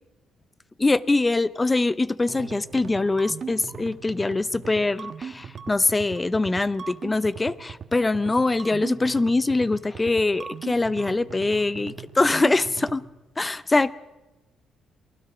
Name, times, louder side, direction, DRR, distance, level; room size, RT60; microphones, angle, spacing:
voice 1, 0.8-13.0 13.4-13.9, left 2 dB, 20° left, 0.6 m, -23 dB
sound 1, 2.3-13.0, right 6 dB, 45° right, 1.4 m, -39 dB
28.5 x 20.0 x 4.9 m
cardioid pair, 115°, 0 cm